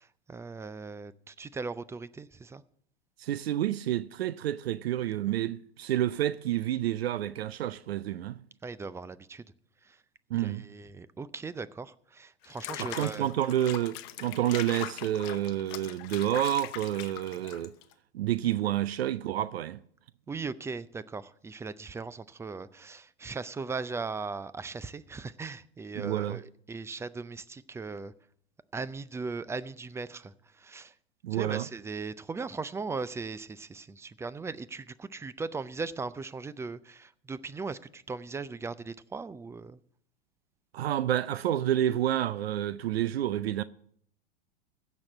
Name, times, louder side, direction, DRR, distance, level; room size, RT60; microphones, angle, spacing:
voice 1, 0.0-2.6 8.6-9.4 9.8-10.0 10.4-13.3 20.3-28.1 28.7-30.9 31.3-39.8, right 4 dB, 10° right, 0.4 m, -38 dB
voice 2, 3.2-8.4 10.3-10.6 12.8-17.7 18.1-19.8 26.0-26.4 31.2-31.7 40.7-43.6, right 12 dB, 80° right, 0.6 m, -29 dB
Water / Bathtub (filling or washing), 12.4-17.9, left 15 dB, 50° left, 1.0 m, -41 dB
16.0 x 6.2 x 7.1 m
hypercardioid pair, 95°, 31 cm